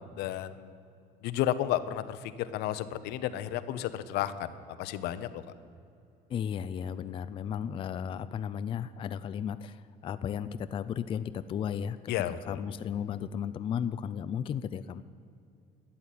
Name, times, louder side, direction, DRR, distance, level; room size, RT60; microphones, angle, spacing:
voice 1, 0.2-0.7 1.2-5.4 12.1-12.6, left 12 dB, 80° left, 12 dB, 0.8 m, -32 dB
voice 2, 6.3-12.0 12.5-15.0, left 8 dB, 30° left, 12 dB, 0.4 m, -34 dB
12.5 x 8.7 x 9.4 m, 2.6 s
cardioid pair, 145°, 17 cm